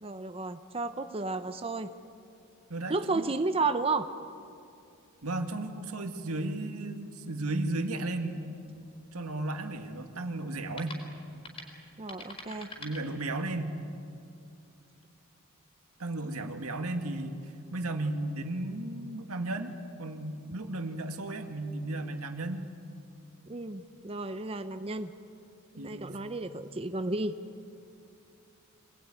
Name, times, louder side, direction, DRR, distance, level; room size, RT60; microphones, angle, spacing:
voice 1, 0.0-1.9 2.9-4.1 12.0-12.7 23.5-25.1 25.7-27.3, right 3 dB, 25° right, 9 dB, 0.7 m, -32 dB
voice 2, 2.7-3.3 5.2-8.6 9.1-11.0 12.8-13.7 16.0-17.3 17.7-22.6 25.8-26.1, right 2 dB, 85° right, 5 dB, 2.1 m, -34 dB
sound 1, 8.7-13.7, left 2 dB, 25° left, 4.5 m, -49 dB
25.5 x 20.0 x 9.8 m, 2.5 s
head